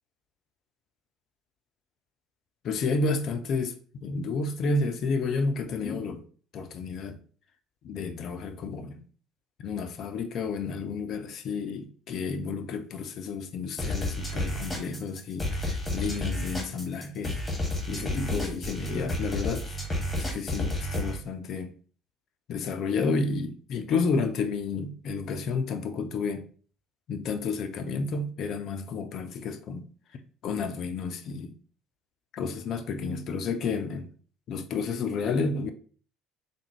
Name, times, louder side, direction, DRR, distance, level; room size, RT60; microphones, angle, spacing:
voice 1, 2.6-6.2 6.5-7.2 7.8-9.0 9.6-17.4 17.9-19.6 20.2-21.7 22.5-26.4 27.1-29.9 30.4-31.5 32.3-34.1 34.5-35.7, left 4 dB, 50° left, 0.4 m, -31 dB
sound 1, 13.8-21.2, left 1 dB, 15° left, 1.1 m, -31 dB
3.4 x 2.1 x 3.2 m
figure-of-eight pair, 60°, 0 cm